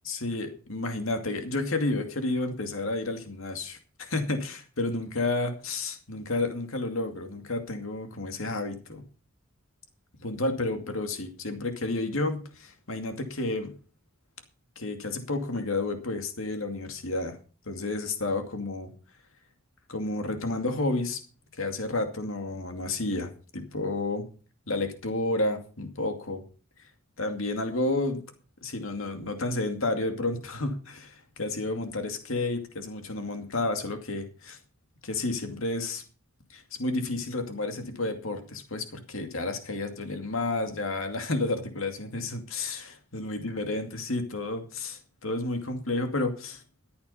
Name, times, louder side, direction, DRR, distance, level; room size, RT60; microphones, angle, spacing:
voice 1, 0.0-9.0 10.2-13.7 14.8-17.4 17.7-18.9 19.9-21.2 21.5-24.2 24.7-26.4 27.2-28.2 28.6-34.6 35.0-36.0 36.5-46.6, left 2 dB, 70° left, 6 dB, 2.4 m, -31 dB
14.0 x 8.7 x 5.6 m, 0.37 s
head